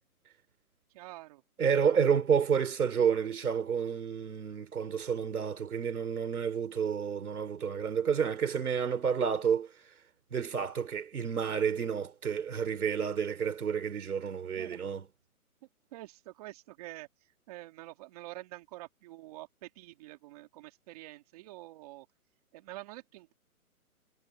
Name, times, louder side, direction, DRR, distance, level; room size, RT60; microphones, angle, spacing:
voice 1, 0.9-1.4 1.8-2.0 14.5-14.8 15.9-17.1 17.5-22.1 22.5-23.3, right 18 dB, 25° right, 2.9 m, -47 dB
voice 2, 1.6-9.7 10.3-15.1, right 7 dB, 75° right, 3.4 m, -30 dB
hypercardioid pair, 165°, 44 cm